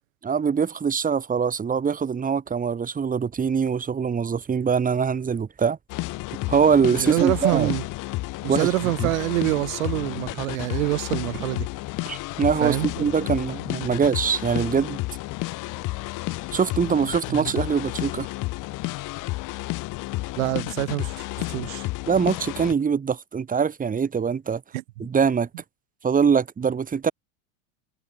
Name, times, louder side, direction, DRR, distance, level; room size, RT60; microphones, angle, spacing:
voice 1, 0.2-5.8 6.5-7.7 8.5-8.7 9.0-9.1 12.1-15.0 16.5-18.3 22.1-24.6 25.0-25.5 26.0-27.1, right 6 dB, 20° right, 3.8 m, -23 dB
sound 1, 5.9-22.7, left 20 dB, 50° left, 3.5 m, -31 dB
voice 2, 6.9-7.8 8.4-11.7 12.6-13.1 17.3-17.5 20.4-21.9 24.7-25.1, right 18 dB, 75° right, 2.9 m, -26 dB
supercardioid pair, 125°, 41 cm